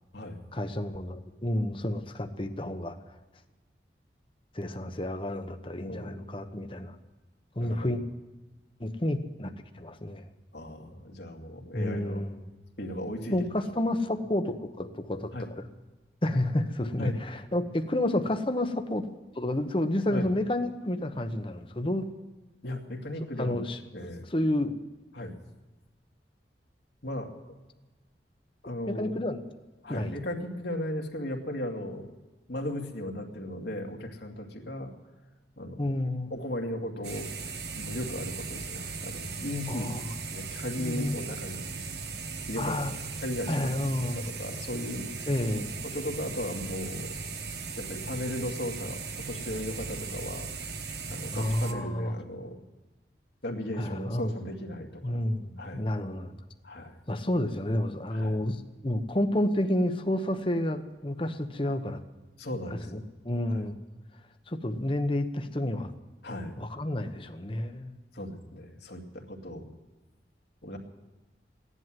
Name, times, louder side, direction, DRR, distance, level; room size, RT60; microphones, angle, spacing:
voice 1, 0.5-3.0 4.5-6.9 7.6-8.0 8.8-10.2 11.7-12.4 13.3-15.7 16.2-19.1 19.3-22.1 23.4-23.8 24.3-24.8 28.9-29.5 29.9-30.2 35.8-36.3 39.7-40.1 40.8-41.2 42.6-42.9 43.5-44.2 45.3-45.7 51.3-52.1 53.8-54.3 55.0-56.3 57.1-62.0 62.9-63.8 64.5-65.9 66.6-68.0, left 1 dB, 30° left, 7 dB, 1.0 m, -30 dB
voice 2, 5.9-6.5 7.6-7.9 10.5-12.2 12.8-13.4 15.3-15.5 17.0-17.1 20.1-20.2 22.6-23.6 23.9-24.2 25.1-25.4 27.0-27.3 28.6-29.1 29.8-32.1 32.5-34.9 35.6-35.8 36.3-37.3 37.7-39.9 40.3-41.7 42.2-43.7 44.0-44.1 44.4-45.3 45.8-47.1 47.7-50.5 51.1-52.6 53.4-55.2 55.6-55.8 56.6-57.0 58.1-58.4 62.4-63.0 63.5-63.6 66.2-66.6 68.1-69.6 70.6-70.8, left 1 dB, 75° left, 1 dB, 2.3 m, -36 dB
sound 1, 37.0-51.7, right 4 dB, 70° right, 1.3 m, -38 dB
16.5 x 11.0 x 7.6 m, 1.2 s
head